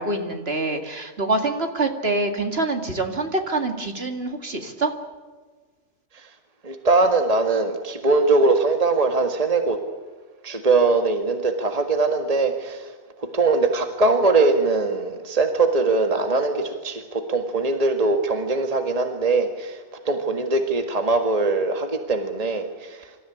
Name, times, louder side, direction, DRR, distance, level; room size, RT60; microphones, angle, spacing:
voice 1, 0.0-4.9, right 2 dB, 50° right, 6 dB, 2.4 m, -25 dB
voice 2, 6.6-9.8 10.4-12.9 13.3-23.1, right 3 dB, 30° right, 6 dB, 1.8 m, -21 dB
26.0 x 14.5 x 9.9 m, 1.4 s
omnidirectional pair, 1.4 m